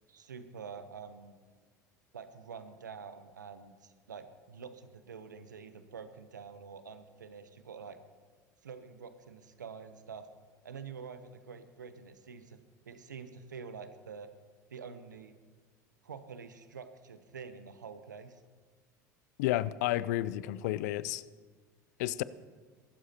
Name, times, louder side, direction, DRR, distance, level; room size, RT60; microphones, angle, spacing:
voice 1, 0.1-1.4 2.1-8.0 8.6-10.3 10.6-12.6 12.9-14.3 14.7-15.4 16.0-18.4, right 6 dB, 85° right, 11 dB, 0.9 m, -47 dB
voice 2, 19.4-21.2 22.0-22.2, left 15 dB, 65° left, 18 dB, 0.5 m, -31 dB
22.5 x 12.5 x 2.9 m, 1.5 s
hypercardioid pair, 75°, 10 cm